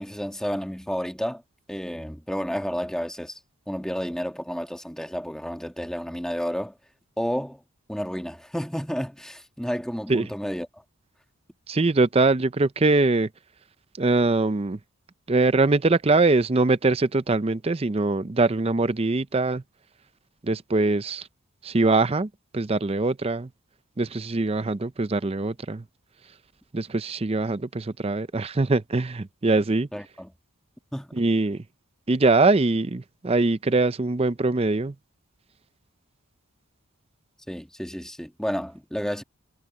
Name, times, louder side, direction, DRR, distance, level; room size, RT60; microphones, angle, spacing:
voice 1, 0.0-1.4 1.7-3.4 3.7-6.8 7.2-7.6 7.9-10.8 29.9-30.3 30.9-31.1 37.5-39.2, equal, 5° left, 1.4 m, -31 dB
voice 2, 11.7-13.3 14.0-14.8 15.3-19.6 20.4-21.3 21.6-23.5 24.0-25.8 26.7-29.9 31.1-31.6 32.1-34.9, right 3 dB, 25° right, 0.5 m, -22 dB
head